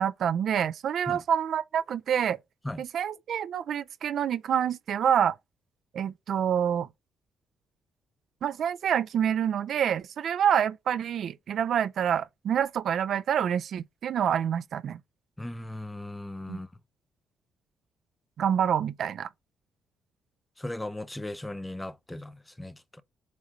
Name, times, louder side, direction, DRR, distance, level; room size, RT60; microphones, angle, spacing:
voice 1, 0.0-2.4 2.8-5.3 5.9-6.9 8.4-15.0 16.5-16.6 18.4-19.3, right 8 dB, 65° right, 0.5 m, -27 dB
voice 2, 15.4-16.7 20.6-23.0, left 1 dB, 10° left, 0.7 m, -37 dB
8.1 x 3.2 x 3.7 m
cardioid pair, 90°, 0 cm